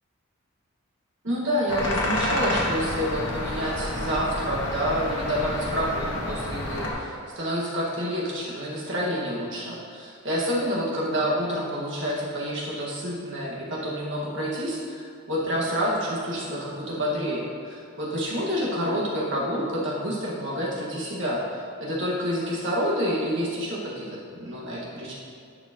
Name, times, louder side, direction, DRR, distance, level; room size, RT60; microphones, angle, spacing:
voice 1, 1.2-25.1, equal, 60° right, -5 dB, 1.7 m, -28 dB
sound 1, 1.7-6.9, left 1 dB, 80° left, 1.5 m, -29 dB
11.0 x 5.9 x 2.9 m, 2.3 s
head